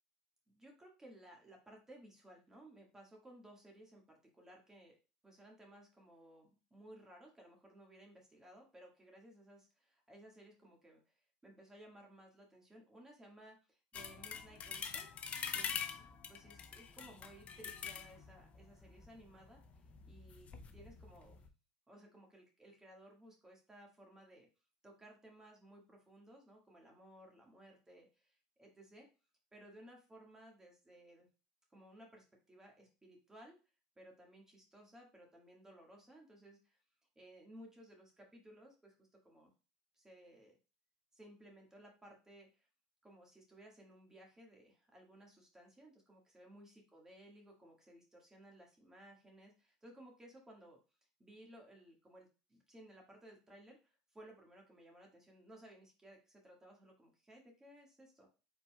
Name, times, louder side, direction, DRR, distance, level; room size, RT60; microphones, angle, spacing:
voice 1, 0.5-5.0 5.2-15.1 15.5-21.4 21.9-24.5 24.8-29.1 29.5-31.3 31.7-33.6 34.0-36.8 37.2-39.0 39.2-39.5 39.9-40.6 41.1-42.7 43.0-50.8 51.2-58.3, right 1 dB, 10° right, 0 dB, 1.6 m, -59 dB
sound 1, 13.9-21.5, left 7 dB, 35° left, 0.5 m, -45 dB
4.6 x 3.9 x 2.3 m, 0.31 s
supercardioid pair, 115°, 4 cm